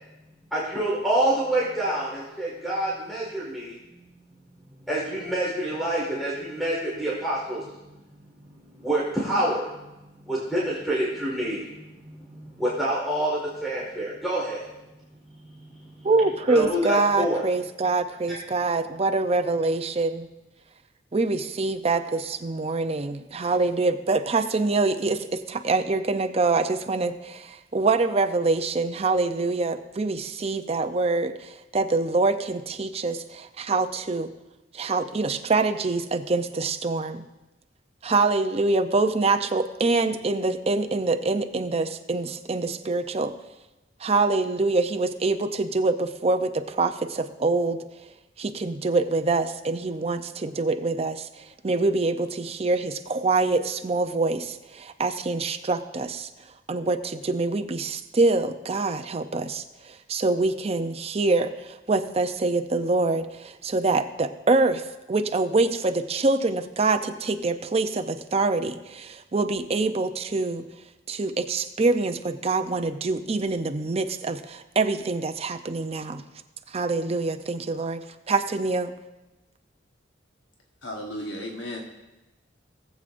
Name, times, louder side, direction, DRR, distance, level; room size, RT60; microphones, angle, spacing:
voice 1, 0.5-3.8 4.9-7.7 8.4-9.9 10.3-14.7 15.3-16.1 16.5-17.4 18.3-18.4, right 1 dB, ahead, -7 dB, 1.8 m, -27 dB
voice 2, 16.0-20.3 21.1-34.3 34.7-37.2 38.0-43.3 44.0-47.8 48.4-56.3 56.7-70.6 71.1-76.2 76.7-78.9, right 3 dB, 35° right, 8 dB, 0.5 m, -25 dB
voice 3, 80.8-81.8, left 1 dB, 75° left, 0 dB, 1.2 m, -34 dB
18.5 x 7.6 x 2.5 m, 1.0 s
head